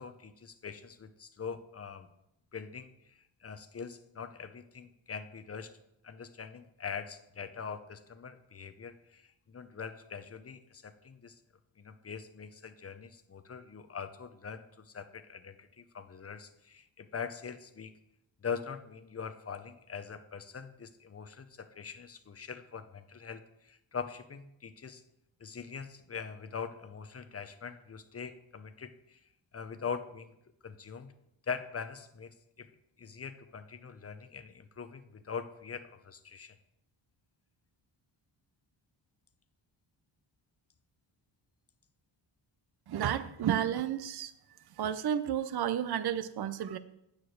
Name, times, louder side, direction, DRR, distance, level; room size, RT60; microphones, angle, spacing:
voice 1, 0.0-2.1 2.5-5.7 6.0-11.4 11.8-17.9 18.4-25.0 25.4-29.2 29.5-30.4 30.6-31.1 31.4-36.6, left 6 dB, 30° left, 10 dB, 0.7 m, -43 dB
voice 2, 42.9-44.3 44.8-46.8, right 9 dB, 55° right, 13 dB, 0.6 m, -31 dB
8.4 x 4.8 x 6.3 m, 0.82 s
cardioid pair, 80°, 48 cm